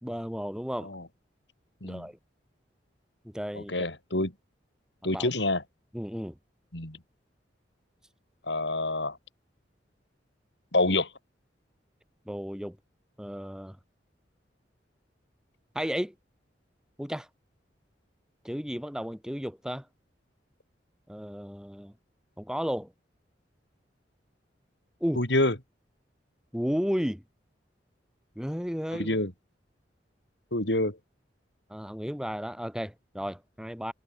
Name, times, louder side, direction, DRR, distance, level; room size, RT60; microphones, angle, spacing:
voice 1, 0.0-0.9 1.8-2.2 3.2-3.8 5.1-5.3 5.9-6.4 12.3-12.8 13.2-13.8 15.7-16.1 17.0-17.3 18.4-19.9 21.1-21.9 22.4-22.9 25.0-25.2 26.5-27.2 28.3-29.2 31.7-33.9, equal, 5° right, 3.0 m, -33 dB
voice 2, 3.5-4.3 5.0-5.6 6.7-7.0 8.5-9.2 10.7-11.1 25.2-25.5 29.0-29.3 30.5-31.0, left 2 dB, 70° left, 5.3 m, -27 dB
head